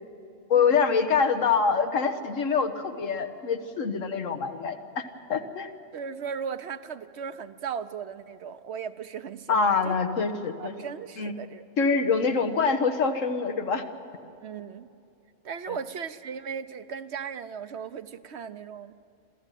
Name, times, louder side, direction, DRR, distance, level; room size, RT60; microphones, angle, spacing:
voice 1, 0.5-5.0 5.3-5.7 9.5-10.7 11.2-11.3 11.8-13.8 15.7-15.8, left 5 dB, 90° left, 7 dB, 1.7 m, -25 dB
voice 2, 5.9-9.9 10.6-11.7 14.4-14.9 15.4-18.9, right 7 dB, 65° right, 11 dB, 1.0 m, -37 dB
27.0 x 15.0 x 9.2 m, 2.7 s
omnidirectional pair, 1.3 m